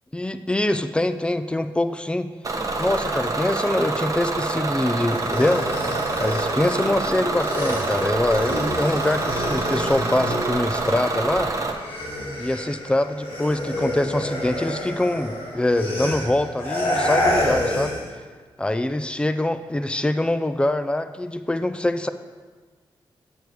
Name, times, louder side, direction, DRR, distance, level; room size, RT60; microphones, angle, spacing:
voice 1, 0.1-2.3 2.8-5.7 6.2-11.5 12.4-17.9 18.6-22.1, left 1 dB, 10° left, 10 dB, 0.4 m, -24 dB
Bus / Engine, 2.4-11.7, right 3 dB, 40° right, 0.9 m, -26 dB
sound 1, 5.1-11.3 11.6-18.1, left 1 dB, 85° left, 1.8 m, -28 dB
8.1 x 6.8 x 4.6 m, 1.5 s
wide cardioid pair, 105°, 9 cm